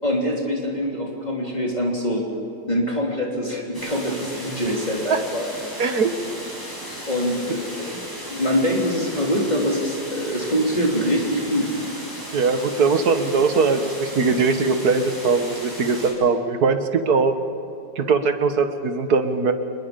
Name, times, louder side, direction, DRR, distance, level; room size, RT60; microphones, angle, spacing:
voice 1, 0.0-2.2 2.7-5.4 7.1-8.0 8.3-11.7, equal, 20° left, -2 dB, 3.4 m, -24 dB
sound 1, 3.7-16.1, equal, 10° right, 6.5 m, -36 dB
voice 2, 5.8-6.1 7.5-7.6 12.3-17.3 17.9-19.5, right 4 dB, 60° right, 8 dB, 1.8 m, -20 dB
26.0 x 21.5 x 5.2 m, 2.9 s
omnidirectional pair, 1.9 m